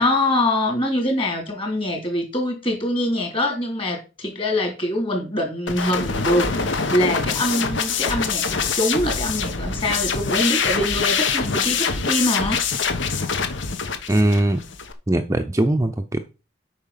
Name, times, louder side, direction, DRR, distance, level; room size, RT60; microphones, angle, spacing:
voice 1, 0.0-12.6, left 1 dB, 25° left, 3.1 m, -24 dB
sound 1, 5.7-14.9, left 5 dB, 70° left, 1.2 m, -24 dB
voice 2, 14.1-14.6 15.1-16.2, right 1 dB, 15° right, 0.5 m, -20 dB
8.6 x 5.6 x 5.7 m
head